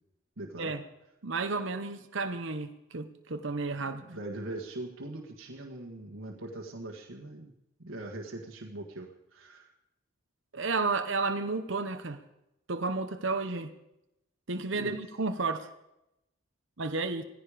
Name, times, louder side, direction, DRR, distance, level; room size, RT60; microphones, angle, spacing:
voice 1, 0.4-0.8 3.8-7.5 7.8-9.7 14.7-15.0, right 2 dB, 90° right, 1.7 m, -41 dB
voice 2, 1.2-4.0 10.5-12.2 12.7-13.7 14.5-15.7 16.8-17.2, right 3 dB, 70° right, 1.0 m, -32 dB
16.5 x 15.0 x 5.1 m
head